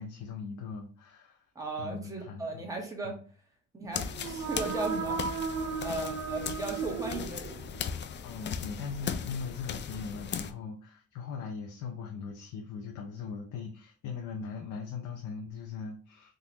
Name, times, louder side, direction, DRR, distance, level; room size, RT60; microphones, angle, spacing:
voice 1, 0.0-1.4 1.8-2.7 3.0-3.2 8.2-16.3, left 5 dB, 80° left, 1 dB, 0.7 m, -40 dB
voice 2, 1.5-3.1 3.7-5.2 5.8-7.6, right 2 dB, 10° right, 0 dB, 1.2 m, -36 dB
sound 1, 3.9-10.5, left 7 dB, 40° left, 0.4 m, -38 dB
sound 2, 4.1-7.9, right 6 dB, 90° right, 0.6 m, -35 dB
3.8 x 2.5 x 2.8 m, 0.40 s
cardioid pair, 90°, 30 cm